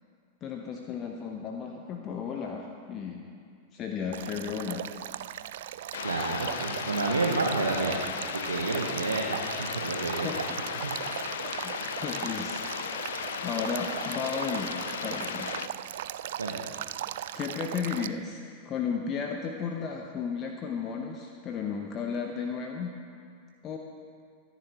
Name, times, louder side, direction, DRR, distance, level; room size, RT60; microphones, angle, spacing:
voice 1, 0.4-3.3 3.7-4.9 10.2-10.6 11.6-12.7 13.4-15.6 17.3-23.0 23.6-23.8, left 6 dB, 30° left, 2 dB, 1.0 m, -34 dB
Male speech man speaking / Stream / Trickle dribble, 4.1-18.1, right 12 dB, 55° right, 0.3 m, -38 dB
sound 1, 5.9-15.7, left 9 dB, 60° left, 0.4 m, -36 dB
voice 2, 6.0-8.1 8.5-10.4 10.8-11.0 16.4-16.7, right 3 dB, 75° right, 0 dB, 1.0 m, -30 dB
24.0 x 10.0 x 3.0 m, 2.2 s
figure-of-eight pair, 90°, 0 cm